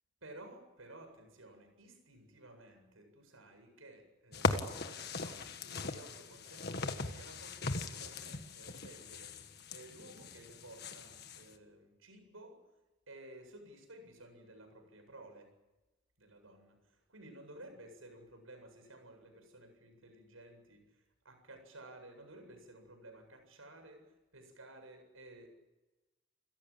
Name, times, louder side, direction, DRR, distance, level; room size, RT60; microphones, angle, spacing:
voice 1, 0.2-12.6 13.1-15.5 16.2-25.5, right 1 dB, 85° right, 6 dB, 7.9 m, -55 dB
sound 1, 4.3-11.5, left 3 dB, 50° left, 1.7 m, -39 dB
29.5 x 16.5 x 8.9 m, 1.1 s
head